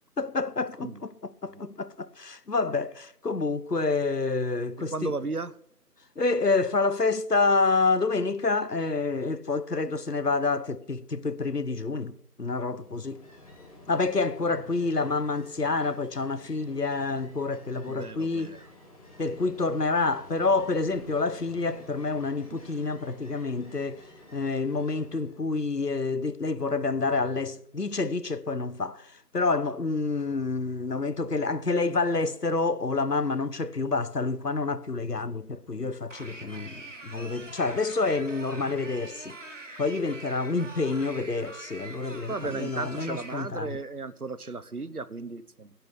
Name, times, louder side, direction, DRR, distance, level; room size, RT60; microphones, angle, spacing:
voice 1, 0.2-5.1 6.2-13.2 13.9-18.5 19.2-24.0 24.3-39.4 39.8-43.8, left 3 dB, 85° left, 1.2 m, -28 dB
voice 2, 4.9-5.5 17.9-18.6 42.3-45.7, right 3 dB, 70° right, 1.2 m, -35 dB
Ocean, 12.7-25.4, left 1 dB, 25° left, 3.5 m, -51 dB
sound 1, 36.1-43.4, right 2 dB, 50° right, 2.7 m, -44 dB
19.5 x 10.5 x 3.7 m
figure-of-eight pair, 160°, 47 cm